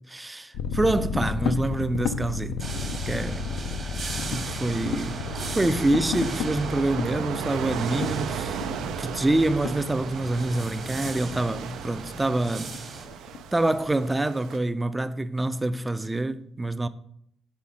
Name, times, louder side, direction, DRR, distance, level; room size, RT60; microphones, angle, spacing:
voice 1, 0.1-2.7 3.1-3.4 4.2-8.7 9.0-12.7 13.5-16.9, right 2 dB, 15° right, 0.4 m, -26 dB
sound 1, 0.5-14.2, left 6 dB, 90° left, 0.4 m, -33 dB
sound 2, 2.6-13.1, right 3 dB, 50° right, 1.2 m, -39 dB
sound 3, 4.2-14.6, right 9 dB, 85° right, 0.3 m, -36 dB
5.6 x 3.8 x 4.8 m
cardioid pair, 90°, 0 cm